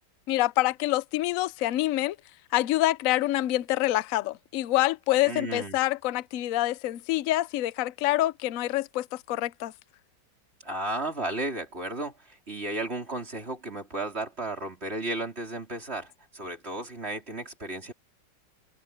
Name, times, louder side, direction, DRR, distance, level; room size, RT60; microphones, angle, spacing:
voice 1, 0.3-2.2 2.5-9.7, left 16 dB, 65° left, 0.9 m, -26 dB
voice 2, 5.2-5.8 10.6-17.9, right 2 dB, 35° right, 4.2 m, -34 dB
omnidirectional pair, 1.9 m